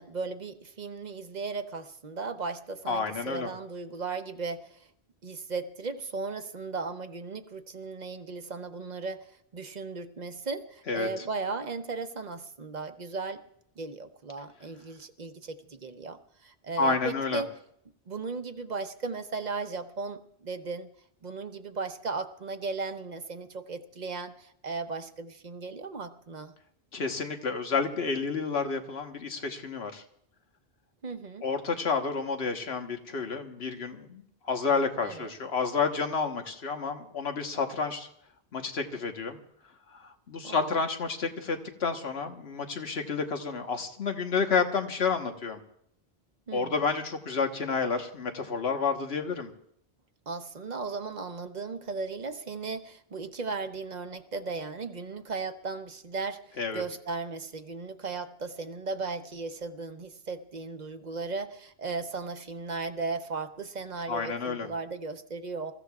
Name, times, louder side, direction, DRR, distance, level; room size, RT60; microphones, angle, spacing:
voice 1, 0.0-4.9 5.2-13.4 13.8-17.5 18.1-20.9 21.2-26.5 31.0-31.4 35.0-35.3 40.4-40.7 46.5-46.8 50.3-65.7, right 4 dB, 45° right, 8 dB, 0.9 m, -36 dB
voice 2, 2.9-3.5 10.9-11.1 16.8-17.4 26.9-30.0 31.4-38.1 38.5-39.4 40.0-45.6 46.5-49.5 56.6-56.8 64.1-64.7, left 5 dB, 80° left, 5 dB, 1.5 m, -30 dB
27.0 x 15.0 x 2.4 m, 0.69 s
omnidirectional pair, 1.1 m